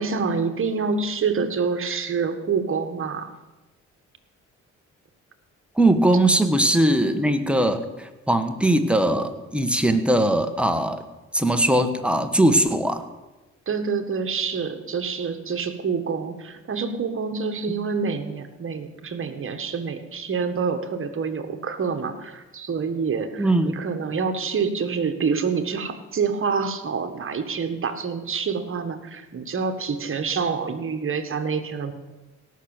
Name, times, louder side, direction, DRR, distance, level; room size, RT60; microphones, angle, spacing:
voice 1, 0.0-3.3 13.7-31.9, right 5 dB, 45° right, 8 dB, 1.6 m, -27 dB
voice 2, 5.8-11.0 11.3-13.0 23.4-23.8, right 1 dB, 5° right, 7 dB, 1.4 m, -20 dB
17.0 x 6.5 x 9.1 m, 1.1 s
cardioid pair, 90°, 30 cm